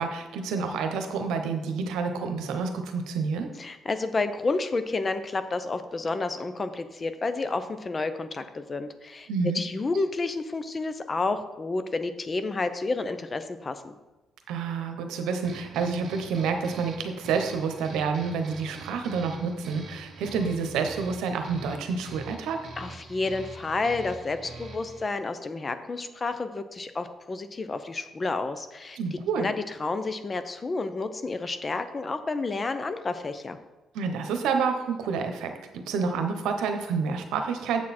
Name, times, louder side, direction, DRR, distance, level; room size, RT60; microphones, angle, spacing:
voice 1, 0.0-3.5 9.3-9.6 14.5-22.6 28.9-29.5 33.9-37.8, right 5 dB, 90° right, 5 dB, 0.9 m, -29 dB
voice 2, 3.6-9.3 9.5-13.9 22.8-29.0 29.4-29.5 29.8-33.6, left 3 dB, 30° left, 10 dB, 0.6 m, -30 dB
sound 1, 15.4-25.0, right 3 dB, 60° right, 1.2 m, -44 dB
7.5 x 6.4 x 4.3 m, 1.0 s
cardioid pair, 90°, 0 cm